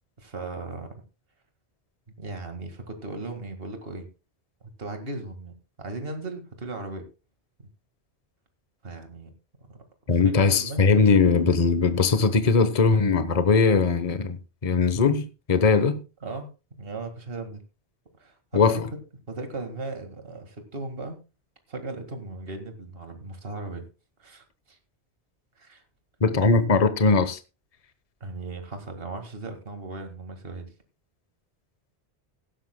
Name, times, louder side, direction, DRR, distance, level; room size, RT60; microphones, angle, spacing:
voice 1, 0.2-0.9 2.2-4.1 4.8-7.1 8.8-9.3 9.7-9.8 10.1-10.8 16.2-16.5 16.8-17.6 18.2-18.8 19.3-21.2 21.7-23.8 24.2-24.8 25.6-25.8 26.4-26.5 28.2-30.7, right 3 dB, 60° right, 2.1 m, -37 dB
voice 2, 10.1-16.0 18.5-18.8 26.2-27.4, left 4 dB, 35° left, 1.1 m, -20 dB
17.0 x 12.5 x 2.2 m
omnidirectional pair, 1.1 m